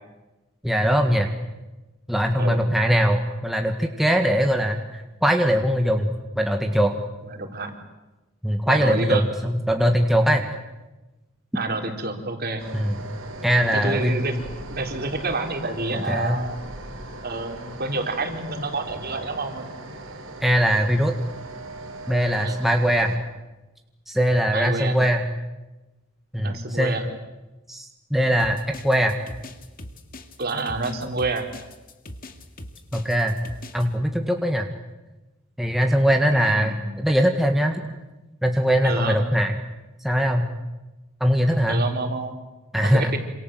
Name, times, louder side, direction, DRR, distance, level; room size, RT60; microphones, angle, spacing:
voice 1, 0.6-1.3 2.1-6.9 8.4-10.5 12.7-12.9 13.4-14.2 16.1-16.4 20.4-21.1 22.1-23.1 24.1-25.2 26.3-26.9 27.7-28.6 28.8-29.1 32.9-33.3 33.7-34.7 35.6-37.8 38.4-39.5 40.0-40.5 41.2-41.8 42.7-43.2, equal, ahead, 3 dB, 1.8 m, -21 dB
voice 2, 7.2-7.7 8.7-9.3 11.5-12.6 13.7-14.4 14.7-16.6 17.2-19.7 22.4-22.6 24.5-25.0 26.4-27.1 30.4-31.5 36.4-36.8 38.8-39.3 41.7-42.3 42.8-43.2, right 3 dB, 50° right, 4 dB, 4.0 m, -28 dB
sound 1, 12.6-23.2, right 2 dB, 80° right, 5.4 m, -39 dB
sound 2, 28.4-33.9, left 1 dB, 45° left, 2.5 m, -40 dB
28.0 x 27.0 x 7.8 m, 1.1 s
head